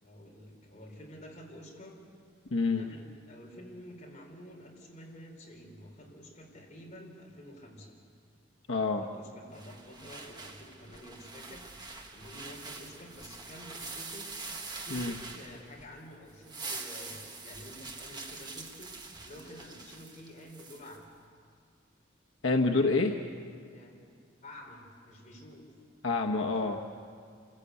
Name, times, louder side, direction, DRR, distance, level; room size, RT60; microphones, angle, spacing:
voice 1, 0.0-2.0 2.7-8.0 9.0-14.3 14.8-21.1 22.9-23.4 23.7-24.0 24.4-25.7 26.6-26.8, left 1 dB, 40° left, -1 dB, 4.4 m, -50 dB
voice 2, 2.5-2.9 8.7-9.0 14.9-15.1 22.4-23.1 26.0-26.8, left 3 dB, 85° left, 2 dB, 1.1 m, -27 dB
sound 1, 9.5-15.9 16.3-21.0, right 3 dB, 25° right, 1.7 m, -44 dB
27.5 x 15.0 x 8.4 m, 2.2 s
head